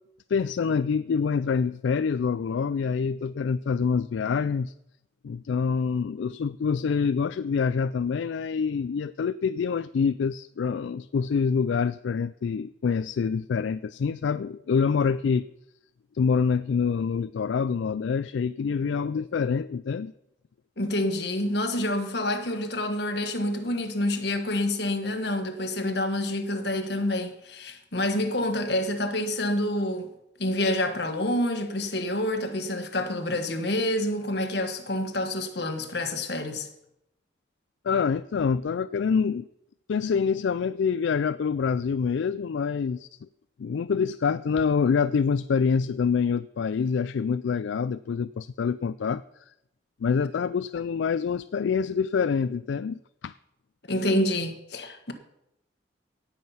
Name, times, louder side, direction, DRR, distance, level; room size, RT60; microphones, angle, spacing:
voice 1, 0.3-4.7 5.2-15.4 16.1-20.1 37.8-39.5 39.9-43.1 43.6-49.2 50.0-53.3, left 6 dB, 75° left, 0.3 m, -26 dB
voice 2, 20.8-30.1 30.4-36.7 53.9-55.1, left 1 dB, 55° left, 1.5 m, -28 dB
17.0 x 7.4 x 5.7 m
head